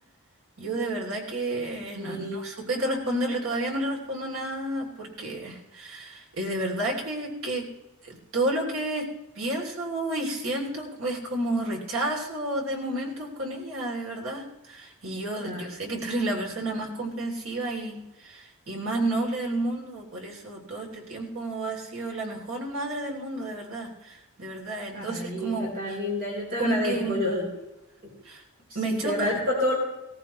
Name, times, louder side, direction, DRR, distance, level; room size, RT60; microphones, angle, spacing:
voice 1, 0.6-7.6 8.0-9.1 9.3-26.0 26.6-27.3 28.2-28.4 28.7-29.4, right 1 dB, 75° right, -1 dB, 3.1 m, -31 dB
voice 2, 2.0-2.4 15.4-15.7 24.9-27.4 28.8-29.8, left 1 dB, 45° right, -3 dB, 4.3 m, -29 dB
17.0 x 15.0 x 3.2 m, 0.98 s
head